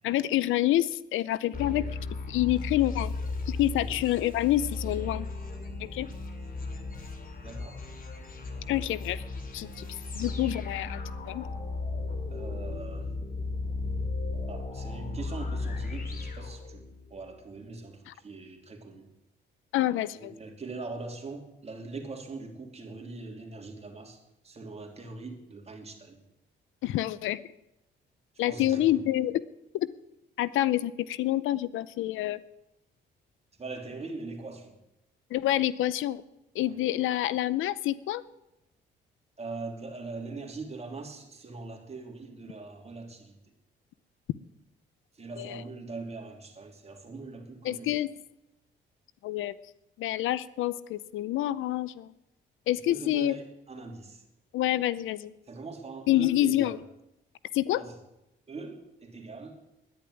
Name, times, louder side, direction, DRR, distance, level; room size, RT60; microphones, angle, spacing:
voice 1, 0.0-1.9 2.3-3.1 3.5-5.3 5.8-6.1 8.7-9.2 9.5-9.9 10.1-11.0 11.3-11.5 18.1-18.2 19.7-20.3 26.8-27.4 28.4-29.4 29.7-29.9 30.4-32.4 35.3-36.2 36.5-38.2 45.4-45.6 47.6-48.1 49.2-49.5 50.0-52.1 52.7-53.4 54.5-55.3 56.1-56.8 57.5-57.8, left 14 dB, 85° left, 18 dB, 0.6 m, -27 dB
sound 1, 1.5-17.1, left 3 dB, 45° left, 2.7 m, -35 dB
voice 2, 7.4-7.8 9.6-9.9 12.3-13.1 14.5-16.8 17.1-19.1 20.2-26.2 28.4-29.1 33.6-34.8 39.4-43.3 45.1-47.9 52.9-54.2 55.5-56.7 57.7-57.9 58.5-59.6, right 3 dB, 30° right, 3 dB, 3.0 m, -41 dB
10.5 x 10.5 x 9.9 m, 0.91 s
cardioid pair, 90°, 20 cm